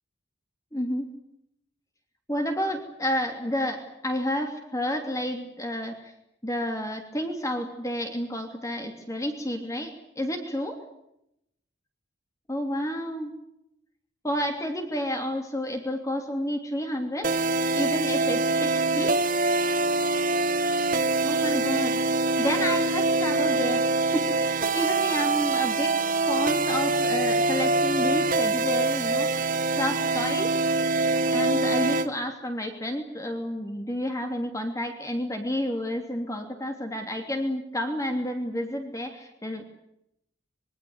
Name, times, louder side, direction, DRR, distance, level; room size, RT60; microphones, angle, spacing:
voice 1, 0.7-1.1 2.3-6.1 6.4-10.8 12.5-13.3 14.2-17.3 17.7-19.1 21.2-22.0 22.4-23.8 24.1-26.0 26.3-29.4 29.8-30.5 31.3-39.6, equal, 15° left, 4 dB, 3.1 m, -30 dB
sound 1, 17.2-32.1, right 3 dB, 45° right, 1.7 m, -24 dB
26.0 x 23.5 x 8.1 m, 0.80 s
head